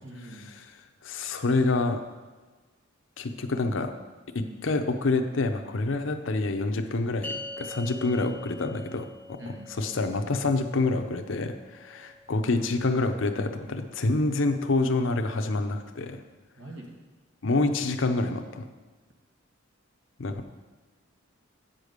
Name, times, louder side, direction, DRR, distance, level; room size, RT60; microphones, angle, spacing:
voice 1, 0.0-0.5 9.4-9.7 16.6-17.0, right 1 dB, 60° right, 0 dB, 1.6 m, -43 dB
voice 2, 1.0-2.0 3.2-3.9 4.3-9.1 9.5-16.2 17.4-18.7 20.2-20.4, left 3 dB, 65° left, 6 dB, 0.7 m, -27 dB
sound 1, 7.2-13.8, left 2 dB, 5° left, 0.5 m, -44 dB
8.9 x 5.1 x 6.5 m, 1.3 s
head